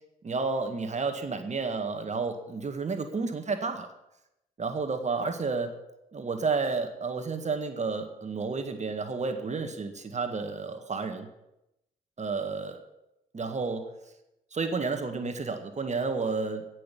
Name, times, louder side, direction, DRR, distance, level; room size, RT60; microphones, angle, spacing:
voice 1, 0.2-3.9 4.6-5.7 6.1-11.3 12.2-12.8 13.3-13.9 14.5-16.7, right 4 dB, 40° right, 7 dB, 1.9 m, -31 dB
17.5 x 6.6 x 8.5 m, 0.89 s
hypercardioid pair, 50°, 18 cm